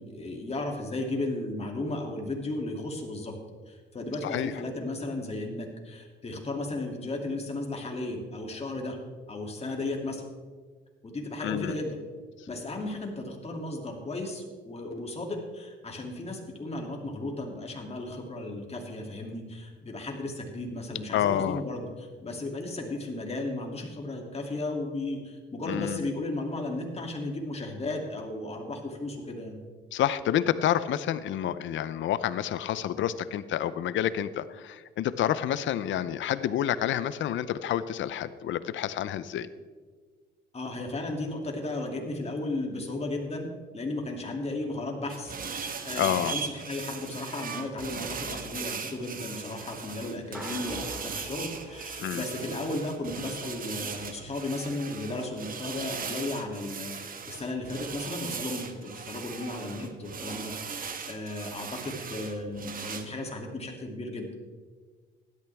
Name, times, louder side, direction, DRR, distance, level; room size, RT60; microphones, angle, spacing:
voice 1, 0.0-3.3 3.7-9.0 9.3-10.2 11.0-12.0 12.5-29.6 40.5-43.5 43.7-64.3, left 2 dB, 30° left, 1 dB, 2.7 m, -35 dB
voice 2, 11.4-11.7 21.1-21.6 25.7-26.1 29.9-39.5 46.0-46.4 52.0-52.2, left 11 dB, 70° left, 15 dB, 0.7 m, -29 dB
sound 1, 45.1-63.0, right 6 dB, 45° right, 1.2 m, -38 dB
sound 2, 50.3-52.8, equal, 5° right, 3.1 m, -44 dB
16.5 x 12.0 x 3.5 m, 1.5 s
cardioid pair, 90°, 20 cm